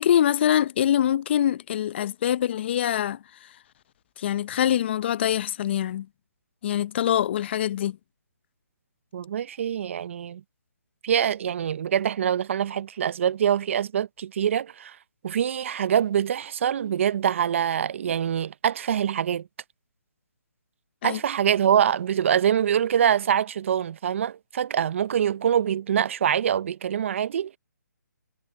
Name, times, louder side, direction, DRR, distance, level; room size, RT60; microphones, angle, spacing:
voice 1, 0.0-3.5 4.2-6.1 6.6-8.0 21.0-21.2, left 10 dB, 35° left, 0.8 m, -24 dB
voice 2, 9.1-10.4 11.0-15.0 15.2-19.5 21.0-27.6, right 9 dB, 40° right, 0.7 m, -24 dB
figure-of-eight pair, 150°, 10 cm